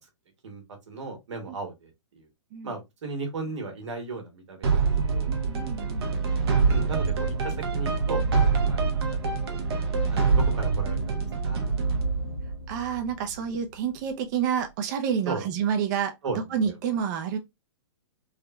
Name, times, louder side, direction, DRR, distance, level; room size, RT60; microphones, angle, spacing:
voice 1, 0.4-2.3 2.6-4.8 5.1-5.3 6.7-7.1 7.4-8.2 8.6-9.2 9.5-9.6 10.1-11.1 11.4-11.6 15.3-15.4 16.2-16.4, right 3 dB, 80° right, 1.4 m, -35 dB
sound 1, 4.6-13.5, right 4 dB, 60° right, 0.9 m, -25 dB
voice 2, 5.2-6.1 12.7-17.4, right 7 dB, 40° right, 0.5 m, -29 dB
3.5 x 2.2 x 2.2 m
hypercardioid pair, 145°, 15 cm